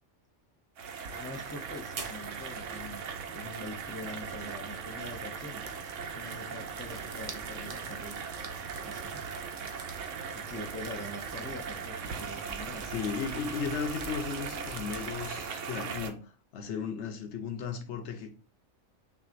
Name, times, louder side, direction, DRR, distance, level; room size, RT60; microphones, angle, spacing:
sound 1, 0.8-16.1, right 6 dB, 85° right, 1.0 m, -39 dB
voice 1, 1.2-5.7 6.1-8.2 8.8-9.3 10.3-12.9, left 2 dB, 15° left, 0.4 m, -44 dB
sound 2, 1.8-15.3, right 4 dB, 45° right, 0.5 m, -48 dB
voice 2, 12.9-18.4, left 6 dB, 70° left, 1.0 m, -35 dB
5.7 x 2.5 x 2.5 m
omnidirectional pair, 1.3 m